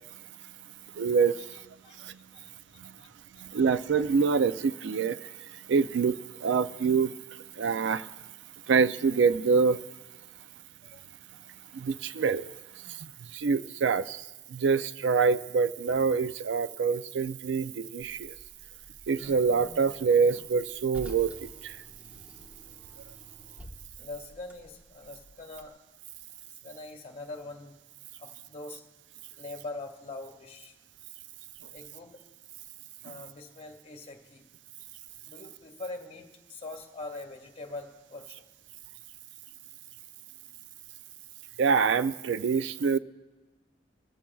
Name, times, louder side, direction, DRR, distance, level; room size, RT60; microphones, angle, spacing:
voice 1, 1.0-1.4 2.0-2.2 2.8-2.9 3.4-5.3 5.7-7.1 7.6-8.1 8.7-9.8 11.7-12.5 12.9-14.2 14.5-18.3 19.1-21.8 41.6-43.0, right 5 dB, 80° right, 0.4 m, -26 dB
voice 2, 1.5-2.1 2.3-2.5 3.0-3.1 3.6-3.7 10.8-11.0 23.2-23.3 24.0-25.7 26.6-27.8 28.2-28.8 29.4-30.8 31.7-32.2 33.0-34.4 35.2-38.4, left 2 dB, 35° left, 1.7 m, -43 dB
Car, 18.0-25.7, equal, 10° right, 1.2 m, -50 dB
22.0 x 14.5 x 2.3 m
head